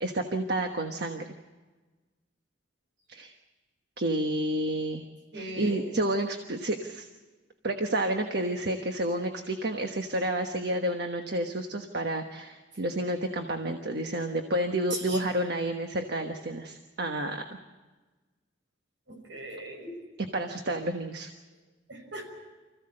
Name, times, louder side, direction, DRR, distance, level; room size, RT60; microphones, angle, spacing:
voice 1, 0.0-1.3 3.1-3.3 4.0-5.0 5.3-7.1 7.6-17.6 20.3-21.3, right 1 dB, 60° right, 4 dB, 1.3 m, -30 dB
voice 2, 5.3-5.8 14.9-15.2 19.1-20.0 21.9-22.3, right 1 dB, 85° right, 2 dB, 5.9 m, -39 dB
25.5 x 15.5 x 7.7 m, 1.3 s
head